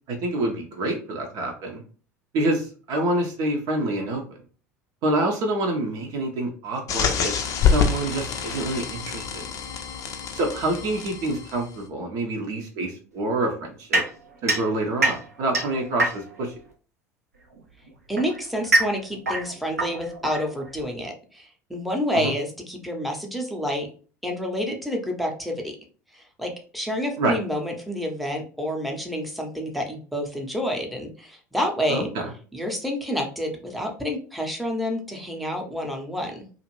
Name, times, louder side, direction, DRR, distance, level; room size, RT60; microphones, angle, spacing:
voice 1, 0.1-1.8 2.3-4.2 5.0-7.3 7.7-9.5 10.3-14.0 14.4-16.5 22.1-22.3 27.2-27.3 31.9-32.3, right 2 dB, 50° right, 1 dB, 0.7 m, -27 dB
sound 1, 6.9-11.7, left 7 dB, 40° left, 0.5 m, -26 dB
sound 2, 13.9-16.5 17.5-20.9, right 2 dB, 85° right, 0.6 m, -26 dB
voice 2, 18.1-23.9 24.2-25.7 26.1-32.1 32.5-36.5, equal, ahead, 1 dB, 0.8 m, -29 dB
2.6 x 2.4 x 3.0 m, 0.40 s
figure-of-eight pair, 70°, 8 cm